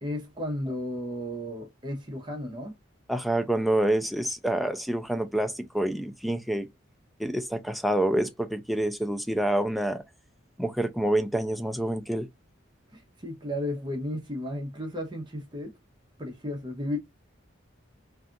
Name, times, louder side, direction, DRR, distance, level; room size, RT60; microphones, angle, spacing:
voice 1, 0.0-2.7 12.9-15.7 16.2-17.0, left 1 dB, 25° right, 0.7 m, -34 dB
voice 2, 3.1-6.7 7.2-10.0 10.6-12.3, right 1 dB, ahead, 0.3 m, -27 dB
2.6 x 2.4 x 2.3 m
head